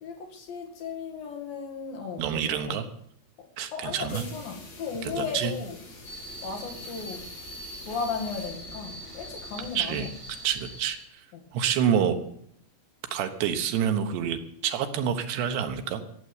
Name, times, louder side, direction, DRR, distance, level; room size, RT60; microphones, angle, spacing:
voice 1, 0.0-2.8 3.4-5.8 6.4-7.3 7.9-10.1 11.3-11.5, left 5 dB, 65° left, 3.6 m, -36 dB
voice 2, 2.2-2.9 3.6-4.2 5.0-5.5 9.7-10.1 10.4-11.2 11.5-12.2 13.1-16.0, right 8 dB, 85° right, 3.4 m, -27 dB
sound 1, 4.1-9.7, left 2 dB, 80° left, 7.8 m, -47 dB
sound 2, 6.0-11.1, equal, 10° right, 2.2 m, -42 dB
15.0 x 7.8 x 9.6 m
omnidirectional pair, 4.7 m